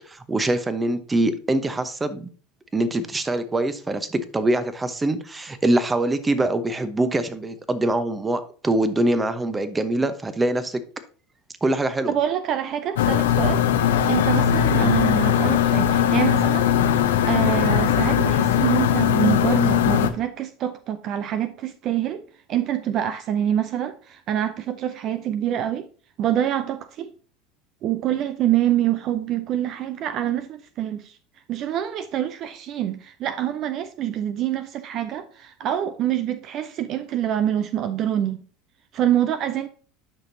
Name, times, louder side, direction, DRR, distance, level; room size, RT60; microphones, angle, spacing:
voice 1, 0.1-2.3 2.7-10.8 11.6-12.1 14.7-14.9, right 1 dB, 15° right, 0.9 m, -24 dB
voice 2, 12.1-13.6 14.1-16.7 17.2-25.9 26.2-27.1 27.8-31.2 31.5-38.4 38.9-39.7, right 11 dB, 50° right, 0.6 m, -25 dB
sound 1, 13.0-20.1, left 9 dB, 75° left, 0.7 m, -19 dB
9.8 x 6.0 x 2.7 m
hypercardioid pair, 80°, 0 cm